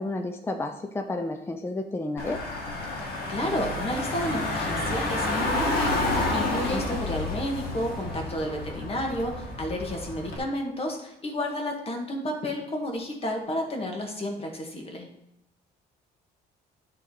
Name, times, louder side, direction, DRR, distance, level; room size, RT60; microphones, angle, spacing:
voice 1, 0.0-2.4 6.7-7.0, left 2 dB, 15° left, 6 dB, 0.5 m, -31 dB
Car / Engine, 2.2-10.4, left 2 dB, 65° left, 2.0 m, -30 dB
voice 2, 3.3-15.1, equal, 35° left, 2 dB, 1.7 m, -31 dB
10.0 x 3.8 x 4.8 m, 0.81 s
cardioid pair, 110°, 17 cm